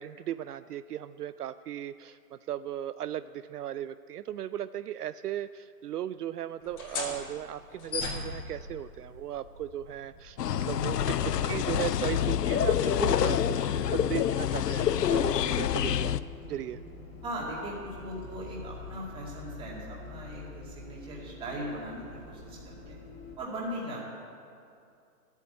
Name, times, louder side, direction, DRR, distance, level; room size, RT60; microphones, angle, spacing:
voice 1, 0.0-16.2 16.5-16.8, right 11 dB, 70° right, 13 dB, 0.5 m, -37 dB
sound 1, 6.6-13.9, left 4 dB, 45° left, 3.0 m, -41 dB
sound 2, 10.4-16.2, left 10 dB, 80° left, 0.7 m, -27 dB
Bus, 10.4-23.3, left 3 dB, 25° left, 3.9 m, -45 dB
voice 2, 17.2-23.0 23.4-24.1, right 1 dB, 10° right, -4 dB, 2.2 m, -39 dB
13.5 x 8.3 x 8.6 m, 2.5 s
hypercardioid pair, 160°, 48 cm